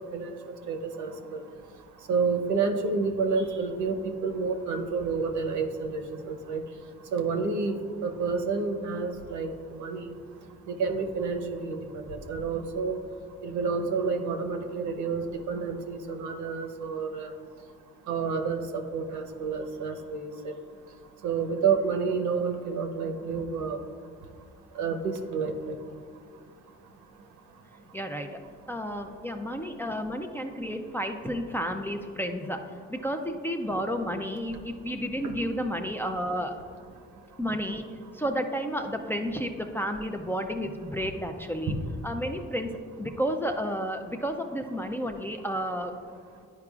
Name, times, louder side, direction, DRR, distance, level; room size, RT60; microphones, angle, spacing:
voice 1, 0.7-1.4 2.1-4.0 4.2-6.6 7.1-7.7 8.0-10.1 10.7-13.0 13.4-17.3 18.1-20.5 21.2-23.8 24.8-25.8 35.2-35.3 41.7-41.8, right 5 dB, 75° right, 5 dB, 0.9 m, -29 dB
voice 2, 27.9-28.4 28.7-36.5 37.4-37.8 38.1-41.7 42.0-42.7 43.0-46.0, equal, 10° left, 4 dB, 0.4 m, -31 dB
11.0 x 4.8 x 2.4 m, 2.3 s
cardioid pair, 90°, 30 cm